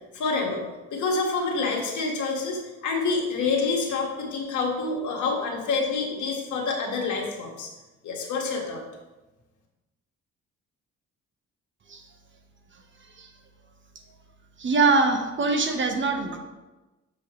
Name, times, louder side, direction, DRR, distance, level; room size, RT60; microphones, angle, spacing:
voice 1, 0.1-0.6 0.9-7.7 8.0-8.8, left 4 dB, 75° left, 0 dB, 1.8 m, -27 dB
voice 2, 14.6-16.4, right 3 dB, 40° right, 4 dB, 1.1 m, -23 dB
7.1 x 6.8 x 3.2 m, 1.1 s
cardioid pair, 90°, 30 cm